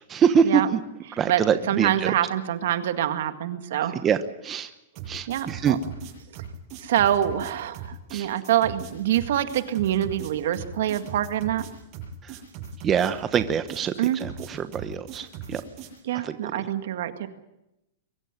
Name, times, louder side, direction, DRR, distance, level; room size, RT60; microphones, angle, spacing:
voice 1, 0.1-0.8 1.2-2.1 4.0-4.2 4.4-4.7 5.1-5.8 8.1-8.3 12.8-15.6 16.2-16.5, right 7 dB, 25° right, 10 dB, 1.0 m, -24 dB
voice 2, 1.3-4.0 5.3-5.8 6.8-11.7 14.0-14.2 16.0-17.3, right 11 dB, 70° right, 8 dB, 1.9 m, -25 dB
sound 1, 5.0-16.0, right 6 dB, 40° right, 8.0 m, -39 dB
23.5 x 14.0 x 9.1 m, 0.91 s
hypercardioid pair, 140°, 0 cm